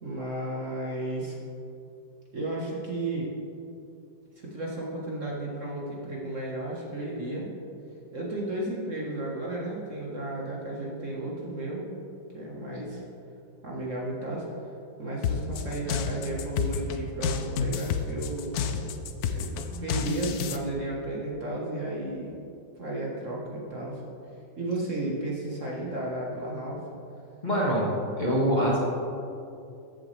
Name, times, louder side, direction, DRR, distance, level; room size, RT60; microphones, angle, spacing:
voice 1, 0.0-1.4 2.3-3.3 4.4-7.5 8.1-11.9 12.3-13.0 13.6-14.5 15.0-18.9 19.3-22.4 22.8-24.0 24.6-26.8, right 1 dB, 45° right, -4 dB, 1.6 m, -33 dB
sound 1, 15.2-20.6, left 6 dB, 70° left, 0.9 m, -30 dB
voice 2, 27.4-27.9 28.2-28.8, equal, 25° left, -6 dB, 1.6 m, -24 dB
14.0 x 8.2 x 3.3 m, 2.6 s
omnidirectional pair, 2.1 m